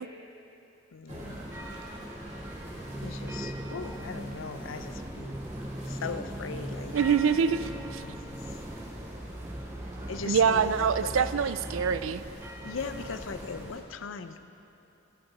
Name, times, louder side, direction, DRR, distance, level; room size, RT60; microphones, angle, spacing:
voice 1, 0.9-1.4 1.8-1.9 3.0-5.4 5.8-7.0 8.0-8.6 10.1-11.3 12.6-14.4, left 5 dB, 80° left, 10 dB, 0.5 m, -39 dB
sound 1, 1.1-13.8, right 1 dB, 10° right, 0.6 m, -39 dB
sound 2, 1.1-13.8, right 1 dB, 35° right, 2.1 m, -48 dB
voice 2, 6.9-8.0 10.3-12.2, right 6 dB, 80° right, 14 dB, 0.4 m, -25 dB
12.5 x 10.0 x 4.1 m, 2.8 s
head